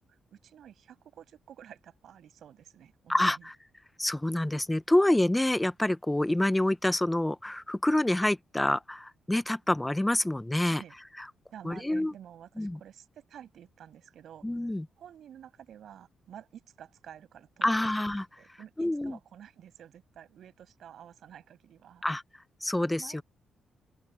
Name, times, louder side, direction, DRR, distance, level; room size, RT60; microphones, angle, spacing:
voice 1, 0.3-3.5 10.8-10.9 11.5-14.5 15.0-17.9 18.4-22.0 23.0-23.2, right 9 dB, 70° right, 7.1 m, -51 dB
voice 2, 3.1-3.5 4.0-10.8 11.2-11.3 11.6-12.1 12.6-12.8 14.4-14.9 17.6-18.3 18.8-19.1 22.0-22.2 22.6-23.2, left 1 dB, 10° left, 0.7 m, -27 dB
open air
cardioid pair, 115°, 0 cm